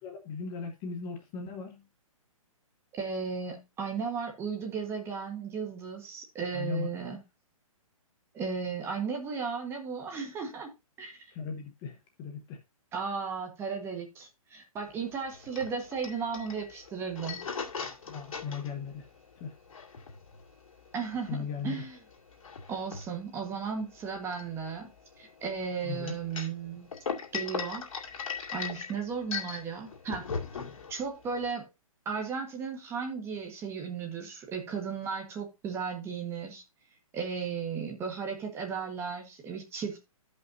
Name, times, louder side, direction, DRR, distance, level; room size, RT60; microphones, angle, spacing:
voice 1, 0.0-1.8 6.5-6.9 11.3-12.6 18.1-19.1 19.4-19.5 21.3-21.8 25.8-26.2, left 5 dB, 20° left, 1.1 m, -37 dB
voice 2, 2.9-7.2 8.3-10.7 11.0-11.3 12.9-17.4 20.9-22.0 22.7-24.9 25.2-26.9 27.3-27.9 28.5-30.3 30.9-31.7 32.0-36.6 37.1-40.0, right 6 dB, 15° right, 1.4 m, -35 dB
sound 1, 14.8-31.5, left 6 dB, 70° left, 2.3 m, -39 dB
13.5 x 5.4 x 2.7 m
hypercardioid pair, 155°, 18 cm